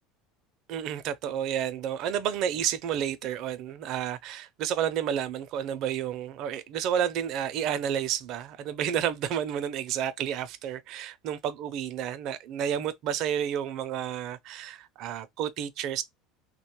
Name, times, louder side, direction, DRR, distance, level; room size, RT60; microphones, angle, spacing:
voice 1, 0.7-16.0, right 9 dB, 55° right, 0.4 m, -31 dB
2.8 x 2.2 x 3.0 m
supercardioid pair, 120°, 0 cm